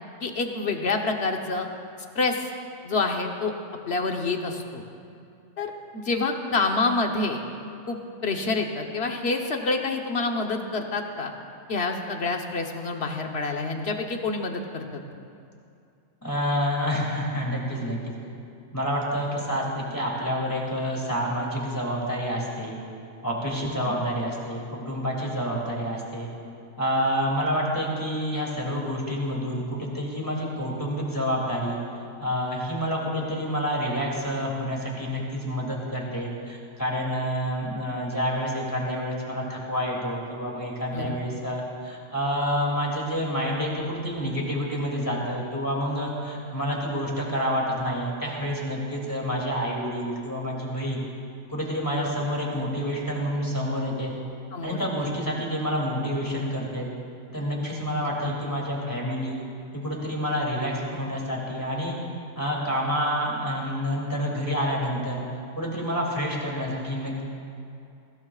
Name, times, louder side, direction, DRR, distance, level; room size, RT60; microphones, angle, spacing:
voice 1, 0.2-1.7 2.1-2.4 2.8-3.5 3.9-4.8 5.6-7.4 7.9-11.3 11.7-15.0 23.6-23.9 40.9-41.2 54.5-55.4 58.2-58.3, left 3 dB, 50° left, 3 dB, 1.3 m, -28 dB
voice 2, 16.2-18.1 18.7-22.8 23.2-26.3 26.8-31.8 32.2-51.0 51.5-54.1 54.6-56.9 57.3-59.4 59.7-61.9 62.3-65.2 65.6-67.2, equal, 15° left, -4 dB, 2.7 m, -28 dB
23.5 x 16.0 x 2.4 m, 2.5 s
omnidirectional pair, 1.4 m